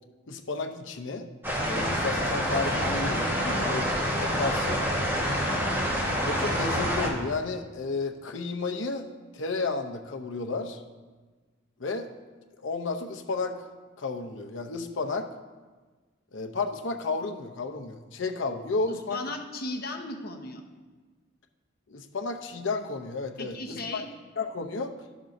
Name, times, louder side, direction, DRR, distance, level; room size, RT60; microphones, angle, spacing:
voice 1, 0.3-1.3 1.6-3.3 3.7-3.8 4.2-4.8 6.2-9.0 9.3-10.8 11.8-12.1 12.6-13.6 14.0-15.3 16.3-19.2 21.9-24.0 24.4-24.9, left 3 dB, 85° left, 5 dB, 0.7 m, -32 dB
sound 1, 1.4-7.1, equal, 10° right, 1.3 m, -27 dB
voice 2, 3.3-3.8 18.9-20.6 23.4-24.0, left 2 dB, 55° left, 3 dB, 0.9 m, -36 dB
13.0 x 6.1 x 2.6 m, 1.3 s
head